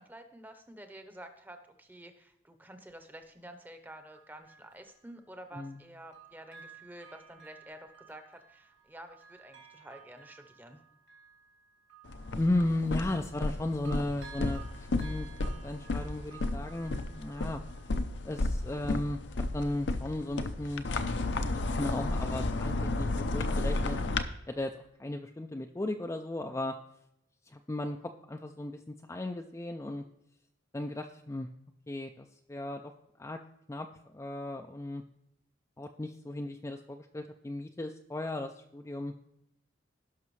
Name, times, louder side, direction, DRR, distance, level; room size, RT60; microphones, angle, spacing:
voice 1, 0.0-10.8, right 1 dB, 10° right, 7 dB, 0.8 m, -50 dB
Bell, 3.9-5.8 6.1-13.5 13.8-18.5 18.9-19.0, right 7 dB, 70° right, 2.5 m, -55 dB
sound 1, 12.1-24.2, left 2 dB, 65° left, 0.6 m, -33 dB
voice 2, 12.4-15.3 15.6-17.6 18.2-19.2 19.5-20.9 21.4-24.0 24.5-26.8 27.5-28.0 28.3-30.0 30.7-31.5 31.9-32.9 33.2-33.4 33.7-33.9 34.1-35.0 35.8-39.1, left 1 dB, 15° left, 4 dB, 0.3 m, -35 dB
17.5 x 5.9 x 3.2 m, 0.81 s
head